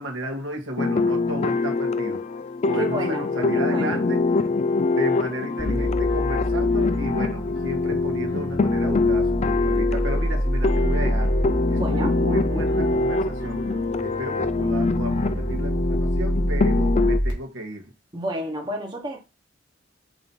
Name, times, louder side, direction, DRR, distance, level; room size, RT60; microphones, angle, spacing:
voice 1, 0.0-2.2 2.6-4.2 5.0-11.3 11.7-13.6 14.0-17.9, right 1 dB, 75° right, 1.7 m, -33 dB
sound 1, 0.8-17.2, left 3 dB, 35° left, 0.4 m, -24 dB
voice 2, 2.7-4.0 11.7-12.1 18.1-19.2, right 1 dB, 25° right, 1.2 m, -30 dB
sound 2, 5.6-17.3, equal, 65° left, 2.4 m, -27 dB
6.2 x 2.9 x 5.4 m
head